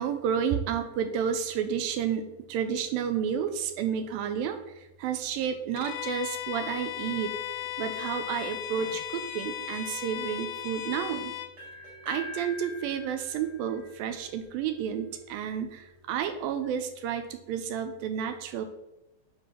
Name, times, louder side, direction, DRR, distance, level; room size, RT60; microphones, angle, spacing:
voice 1, 0.0-11.3 12.1-18.7, right 8 dB, 85° right, 9 dB, 2.4 m, -31 dB
Bowed string instrument, 5.8-11.5, left 13 dB, 85° left, 2.4 m, -36 dB
sound 1, 11.6-15.5, left 2 dB, 50° right, 3.1 m, -44 dB
6.5 x 5.1 x 5.9 m, 0.89 s
omnidirectional pair, 4.2 m